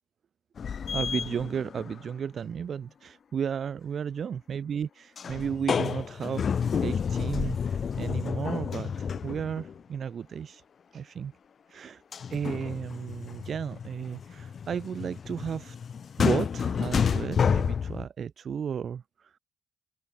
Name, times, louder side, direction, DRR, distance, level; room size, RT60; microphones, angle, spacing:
sound 1, 0.6-2.1 5.2-9.8 12.1-18.0, left 7 dB, 50° left, 3.5 m, -30 dB
voice 1, 0.9-6.5 6.8-10.6 10.9-11.3 11.7-12.0 12.3-15.8 16.2-19.3, right 7 dB, 55° right, 7.8 m, -34 dB
open air
cardioid pair, 90°, 0 cm